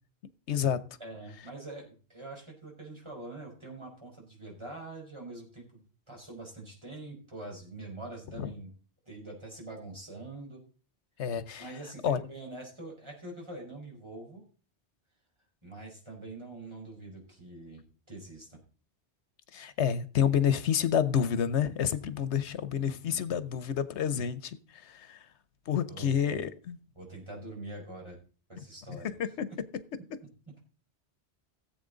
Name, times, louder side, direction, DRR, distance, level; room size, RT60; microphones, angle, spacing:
voice 1, 0.5-0.8 8.4-8.5 11.2-11.7 12.0-12.2 19.5-25.2 25.7-26.8 28.9-29.5, left 8 dB, 90° left, 1.1 m, -29 dB
voice 2, 1.0-8.7 9.0-10.6 11.6-14.4 15.6-18.6 22.8-23.3 25.9-26.4 26.9-28.2 28.5-29.1 29.5-29.6, right 2 dB, 25° right, 4.9 m, -44 dB
17.0 x 7.9 x 3.9 m
omnidirectional pair, 1.1 m